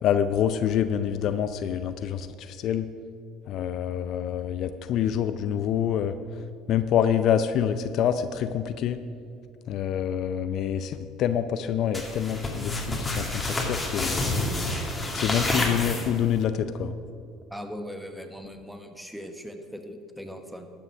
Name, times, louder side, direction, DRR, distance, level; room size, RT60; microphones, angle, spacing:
voice 1, 0.0-2.9 3.5-6.1 6.7-9.0 9.7-14.3 15.1-16.9, left 9 dB, 60° left, 11 dB, 0.5 m, -26 dB
sound 1, 11.9-16.4, left 2 dB, 15° left, 2.2 m, -29 dB
voice 2, 17.5-20.7, equal, ahead, 6 dB, 1.3 m, -39 dB
12.5 x 7.0 x 6.1 m, 2.4 s
hypercardioid pair, 70°, 0 cm